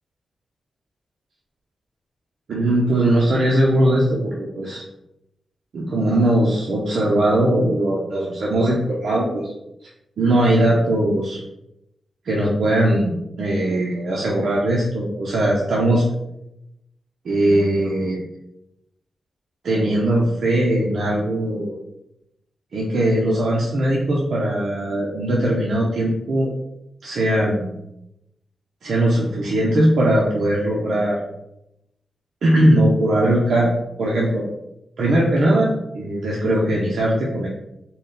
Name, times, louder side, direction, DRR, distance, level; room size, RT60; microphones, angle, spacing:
voice 1, 2.5-4.8 5.7-9.5 10.2-11.4 12.2-16.0 17.2-18.2 19.6-21.8 22.7-26.5 27.0-27.8 28.8-31.2 32.4-33.7 34.0-34.4 35.0-37.5, right 1 dB, 70° right, -3 dB, 0.6 m, -20 dB
3.9 x 2.2 x 3.7 m, 0.86 s
wide cardioid pair, 150°, 0 cm